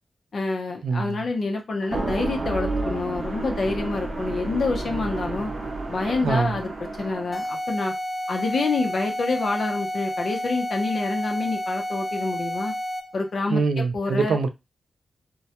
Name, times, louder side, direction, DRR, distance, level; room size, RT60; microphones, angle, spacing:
voice 1, 0.3-5.5 5.9-6.7 7.0-7.9 8.3-12.7 13.1-13.6 13.9-14.4, left 3 dB, 60° left, 0.6 m, -27 dB
voice 2, 0.8-1.2 6.2-6.6 13.5-14.5, right 4 dB, 85° right, 0.4 m, -24 dB
sound 1, 1.8-7.5, right 2 dB, 50° right, 0.7 m, -30 dB
sound 2, 7.3-13.2, equal, 20° left, 0.9 m, -30 dB
2.2 x 2.1 x 2.8 m
wide cardioid pair, 95°, 0 cm